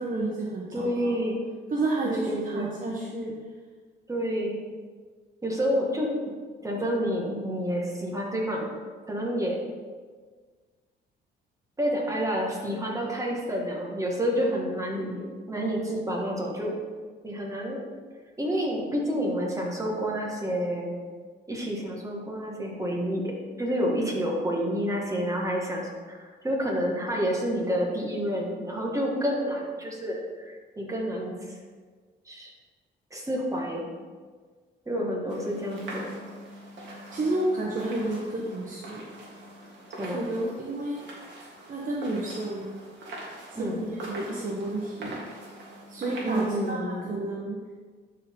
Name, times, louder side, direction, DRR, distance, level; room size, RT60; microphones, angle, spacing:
voice 1, 0.0-1.1 1.7-3.3 34.9-35.1 37.1-39.0 40.0-41.0 41.7-42.7 43.5-43.7 44.0-45.2 45.9-47.6, right 2 dB, 45° right, -3 dB, 1.3 m, -31 dB
voice 2, 0.7-1.4 2.0-2.7 4.1-4.6 5.4-6.1 6.6-8.7 9.1-9.6 11.8-16.8 17.2-17.8 18.4-21.0 21.5-23.3 23.6-31.3 32.3-32.5 33.1-33.8 34.9-36.2 40.0-40.2 43.5-43.8 46.2-47.1, equal, 15° right, -2 dB, 2.0 m, -29 dB
sound 1, 35.3-46.7, right 1 dB, 65° right, 2.4 m, -43 dB
11.5 x 4.7 x 3.9 m, 1.5 s
cardioid pair, 90°, 20 cm